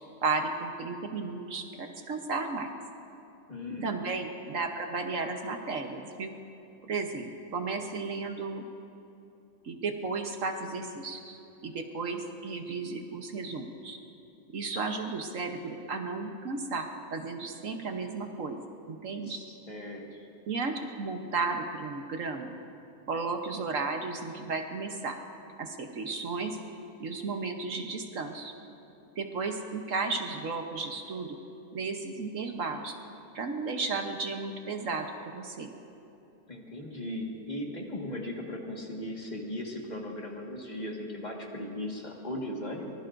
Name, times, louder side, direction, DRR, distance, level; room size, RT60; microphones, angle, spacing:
voice 1, 0.2-2.7 3.8-6.3 6.8-8.6 9.6-14.0 14.5-18.6 18.9-19.4 20.5-22.5 23.1-25.2 25.6-26.6 27.0-28.5 29.2-31.4 31.7-33.0 33.3-35.7, right 4 dB, 60° right, 4 dB, 1.3 m, -34 dB
voice 2, 3.5-3.9 19.3-20.3 36.5-42.9, left 1 dB, 30° left, -1 dB, 1.7 m, -38 dB
24.0 x 20.0 x 2.6 m, 2.9 s
omnidirectional pair, 1.6 m